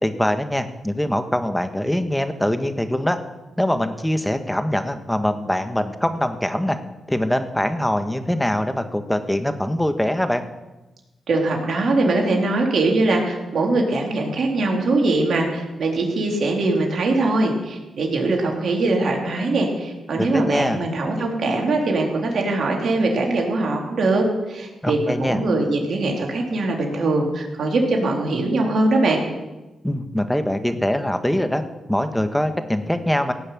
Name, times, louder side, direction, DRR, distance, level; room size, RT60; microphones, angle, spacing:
voice 1, 0.0-3.2 3.6-6.8 7.1-10.4 20.2-20.8 24.8-25.4 29.8-31.6 31.9-33.3, left 1 dB, 5° left, 8 dB, 1.6 m, -23 dB
voice 2, 11.3-29.2, right 2 dB, 65° right, 0 dB, 3.6 m, -22 dB
17.5 x 6.5 x 9.2 m, 1.1 s
cardioid pair, 60°, 0 cm